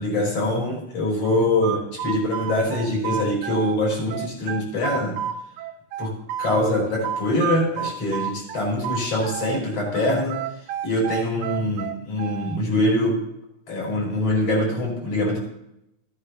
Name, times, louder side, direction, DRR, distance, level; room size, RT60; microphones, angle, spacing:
voice 1, 0.0-5.2 6.0-6.1 6.4-10.4 10.8-13.2 13.7-15.4, left 1 dB, 55° left, -3 dB, 5.7 m, -24 dB
sound 1, 1.2-3.8 4.1-6.6 7.0-9.6 9.9-12.6, right 9 dB, 75° right, 1.6 m, -30 dB
16.5 x 9.7 x 3.0 m, 0.82 s
omnidirectional pair, 3.4 m